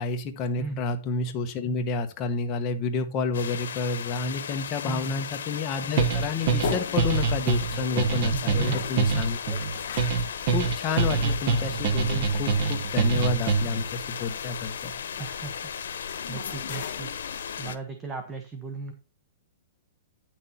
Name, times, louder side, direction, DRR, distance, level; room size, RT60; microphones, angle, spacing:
voice 1, 0.0-9.6 10.5-14.9, left 4 dB, 20° left, 4 dB, 1.1 m, -30 dB
sound 1, 3.3-17.8, left 7 dB, 85° left, 1.0 m, -36 dB
voice 2, 4.8-5.2 8.3-9.0 15.2-15.7 16.3-17.1 17.6-18.9, right 4 dB, 10° right, 5 dB, 0.9 m, -37 dB
sound 2, 6.0-13.9, right 5 dB, 35° right, 1.1 m, -25 dB
sound 3, 6.4-17.7, left 8 dB, 50° left, 1.2 m, -41 dB
9.5 x 6.1 x 4.3 m, 0.32 s
hypercardioid pair, 170°, 0 cm